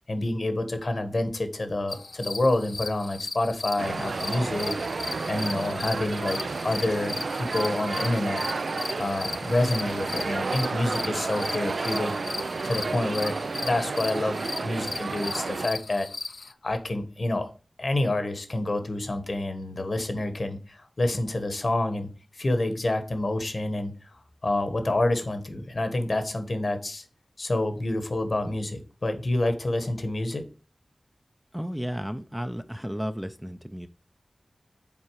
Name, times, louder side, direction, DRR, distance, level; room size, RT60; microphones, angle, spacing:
voice 1, 0.1-8.4 9.0-12.1 12.6-16.1 16.6-17.5 17.8-22.1 22.4-24.1 24.4-27.0 27.4-30.5, left 2 dB, 55° left, 8 dB, 1.2 m, -28 dB
sound 1, 1.9-16.5, left 3 dB, 70° left, 0.4 m, -37 dB
sound 2, 3.8-15.7, right 4 dB, 80° right, 0.4 m, -31 dB
voice 2, 31.5-33.9, equal, 5° right, 9 dB, 0.5 m, -33 dB
7.3 x 4.3 x 4.7 m, 0.38 s
wide cardioid pair, 80°, 0 cm